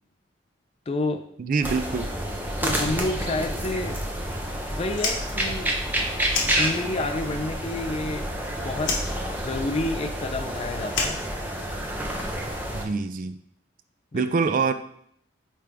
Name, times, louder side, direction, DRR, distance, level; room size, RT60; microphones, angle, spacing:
voice 1, 0.9-1.2 2.6-4.0 4.8-5.8 6.4-8.3 8.5-8.9 9.4-11.2 14.1-14.3, left 2 dB, 30° left, 6 dB, 0.4 m, -29 dB
voice 2, 1.4-2.1 12.7-13.4 14.1-14.7, right 4 dB, 45° right, 11 dB, 0.3 m, -25 dB
sound 1, 1.6-12.9, right 1 dB, 10° right, 0.7 m, -29 dB
Fire, 4.9-7.2 7.4-8.4 8.8-12.0, left 4 dB, 90° left, 1.3 m, -31 dB
8.6 x 3.4 x 3.4 m, 0.68 s
head